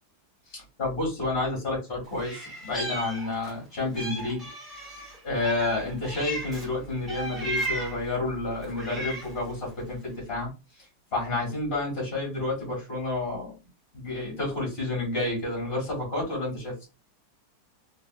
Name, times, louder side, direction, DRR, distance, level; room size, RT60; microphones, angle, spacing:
voice 1, 0.5-4.4 5.2-10.5 10.8-10.9 11.1-13.6 13.9-16.9, left 2 dB, 30° left, -3 dB, 1.6 m, -30 dB
Meow, 2.2-3.6 3.9-6.7 7.1-8.1 8.6-9.4, right 1 dB, ahead, 0.6 m, -35 dB
3.4 x 2.7 x 2.2 m, 0.28 s
omnidirectional pair, 2.4 m